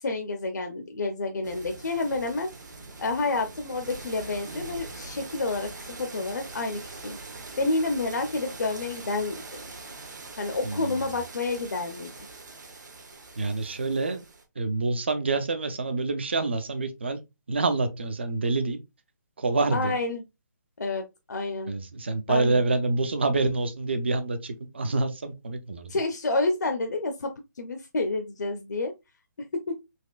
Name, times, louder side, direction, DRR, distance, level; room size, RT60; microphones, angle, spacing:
voice 1, 0.0-2.5 3.0-5.7 6.0-7.2 7.6-9.4 10.4-12.1 19.7-20.2 20.8-21.7 22.3-22.6 25.9-28.9 29.7-29.8, left 3 dB, 70° left, 0.6 m, -29 dB
sound 1, 1.4-14.4, right 3 dB, 70° right, 1.1 m, -43 dB
voice 2, 10.6-11.1 13.4-14.2 14.6-17.2 17.5-18.8 19.4-20.0 21.7-25.9, right 3 dB, 35° right, 0.5 m, -27 dB
4.2 x 2.9 x 2.3 m
hypercardioid pair, 180°, 10 cm